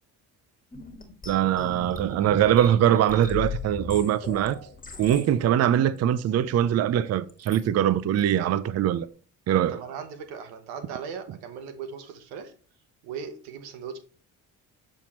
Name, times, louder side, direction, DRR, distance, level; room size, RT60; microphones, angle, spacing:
sound 1, 0.7-5.3 6.0-6.1 7.3-7.6 8.2-8.5, left 5 dB, 20° left, 1.5 m, -38 dB
voice 1, 1.3-4.6 5.0-9.1 9.5-9.8, right 10 dB, 45° right, 0.5 m, -22 dB
voice 2, 9.7-12.5 13.0-14.0, right 6 dB, 90° right, 1.0 m, -38 dB
7.1 x 4.4 x 3.0 m
supercardioid pair, 70°, 37 cm